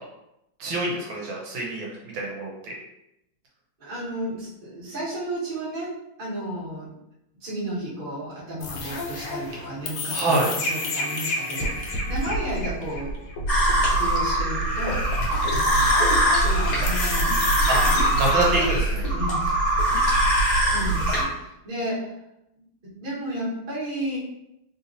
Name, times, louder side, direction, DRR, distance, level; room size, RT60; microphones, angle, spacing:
voice 1, 0.6-2.7 10.1-10.5 17.7-17.8 18.2-19.1, right 2 dB, 75° right, -3 dB, 1.5 m, -26 dB
voice 2, 3.8-5.9 6.2-6.9 7.4-13.1 13.8-15.0 15.5-16.0 16.3-18.3 19.1-19.4 20.7-22.1 22.8-24.2, right 1 dB, 30° right, -9 dB, 1.1 m, -33 dB
sound 1, 8.6-18.9, left 2 dB, 75° left, 1.2 m, -30 dB
sound 2, 13.5-21.2, right 1 dB, 60° left, 1.5 m, -22 dB
3.4 x 2.7 x 2.6 m, 0.86 s
omnidirectional pair, 2.3 m